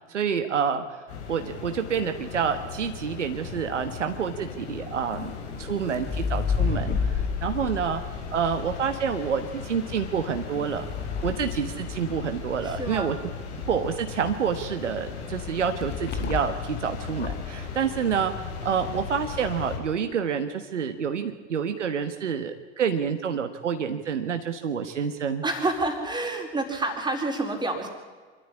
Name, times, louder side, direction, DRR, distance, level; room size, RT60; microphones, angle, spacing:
voice 1, 0.1-0.8 1.3-5.3 5.6-7.1 7.4-8.0 8.3-10.9 11.2-13.2 13.7-25.4, right 7 dB, 75° right, 7 dB, 1.5 m, -28 dB
sound 1, 1.1-19.8, left 5 dB, 65° left, 5.3 m, -37 dB
sound 2, 5.1-9.2 10.2-12.5 15.8-16.7 17.1-17.6, left 6 dB, 30° left, 1.7 m, -31 dB
voice 2, 12.6-13.1 25.4-27.9, right 2 dB, 10° right, 3 dB, 4.3 m, -28 dB
25.5 x 13.0 x 9.9 m, 1.4 s
figure-of-eight pair, 85°, 36 cm